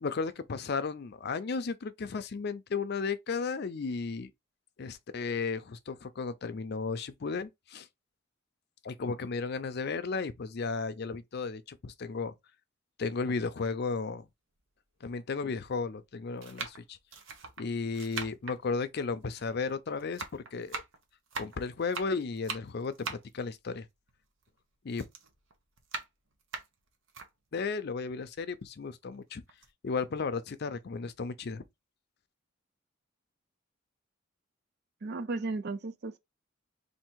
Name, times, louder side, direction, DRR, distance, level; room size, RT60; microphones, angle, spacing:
voice 1, 0.0-4.3 4.8-7.9 8.8-12.3 13.0-14.3 15.0-17.0 17.6-20.8 21.4-23.9 24.8-25.0 27.5-29.4 29.8-31.6, left 4 dB, 55° left, 0.5 m, -34 dB
sound 1, 13.6-13.7 14.6-14.7 15.6-15.9 16.4-19.7 20.0-24.6 24.9-27.3 27.8-27.9 28.2-29.2 29.5-29.7, right 4 dB, 75° right, 0.9 m, -42 dB
voice 2, 35.0-36.2, right 3 dB, 55° right, 0.5 m, -35 dB
3.5 x 2.5 x 4.4 m
head